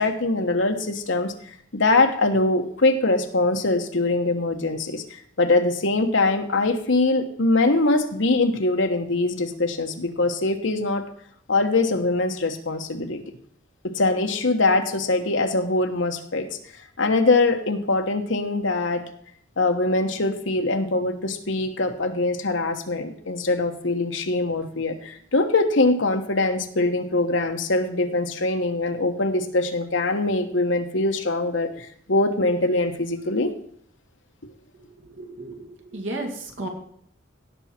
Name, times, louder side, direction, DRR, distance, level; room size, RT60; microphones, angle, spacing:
voice 1, 0.0-11.0 11.5-13.2 13.8-16.6 17.0-19.0 19.6-33.5, left 2 dB, 70° left, 6 dB, 1.2 m, -23 dB
voice 2, 34.8-36.7, right 2 dB, 70° right, 3 dB, 2.2 m, -34 dB
17.0 x 6.2 x 4.4 m, 0.66 s
head